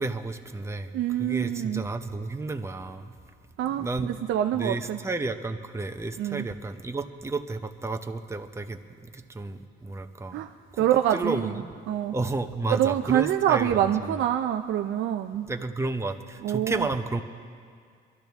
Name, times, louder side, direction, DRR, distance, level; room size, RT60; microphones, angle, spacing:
voice 1, 0.0-0.9 1.2-3.0 3.8-4.1 4.5-10.4 10.7-10.9 11.1-11.6 12.1-14.2 15.5-17.2, right 3 dB, 15° right, 6 dB, 0.8 m, -32 dB
voice 2, 0.9-1.8 3.6-5.0 6.2-6.5 10.3-10.5 10.8-11.5 11.9-12.1 12.7-15.5 16.4-16.9, right 11 dB, 75° right, 6 dB, 0.5 m, -25 dB
23.0 x 12.0 x 3.5 m, 2.2 s
cardioid pair, 90°, 20 cm